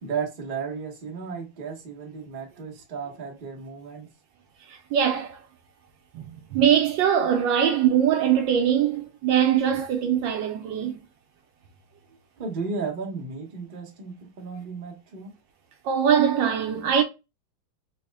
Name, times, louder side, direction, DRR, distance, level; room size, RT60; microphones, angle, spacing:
voice 1, 0.0-4.1 12.4-15.3, right 5 dB, 40° right, 0.7 m, -34 dB
voice 2, 4.7-5.4 6.1-11.0 15.8-17.0, right 9 dB, 75° right, 1.2 m, -22 dB
4.2 x 2.0 x 3.2 m
omnidirectional pair, 2.2 m